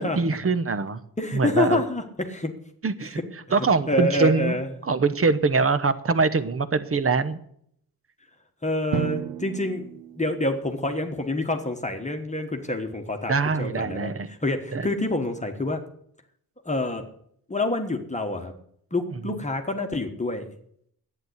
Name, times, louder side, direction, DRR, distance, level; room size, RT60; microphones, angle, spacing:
voice 1, 0.0-1.0 1.3-1.8 2.8-3.2 3.5-4.6 4.8-7.4 13.3-14.3 14.7-14.9 19.2-19.4, right 4 dB, 40° right, 13 dB, 1.0 m, -23 dB
voice 2, 1.2-2.5 3.0-3.2 3.9-4.7 8.6-9.9 10.2-15.8 16.6-17.1 17.5-18.5 18.9-20.5, left 2 dB, 20° left, 4 dB, 1.3 m, -27 dB
Drum, 8.9-10.9, right 9 dB, 75° right, 0.6 m, -33 dB
11.0 x 9.0 x 8.1 m, 0.68 s
wide cardioid pair, 110°, 36 cm